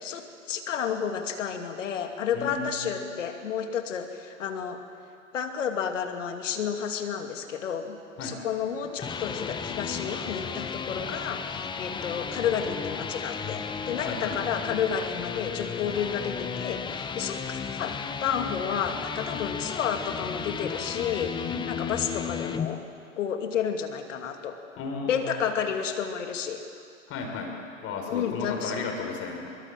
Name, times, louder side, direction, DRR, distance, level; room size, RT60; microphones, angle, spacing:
voice 1, 0.0-4.8 5.3-8.0 8.2-21.3 21.7-22.8 23.2-24.6 25.1-26.6 28.1-28.7, left 7 dB, 65° left, 6 dB, 2.6 m, -31 dB
voice 2, 2.3-2.9 8.2-8.4 14.1-14.4 21.5-21.8 24.8-25.4 27.1-29.6, left 4 dB, 35° left, 2 dB, 5.3 m, -34 dB
sound 1, 8.7-22.7, left 6 dB, 10° left, 0.9 m, -34 dB
23.5 x 23.0 x 7.6 m, 2.4 s
figure-of-eight pair, 105°, 41 cm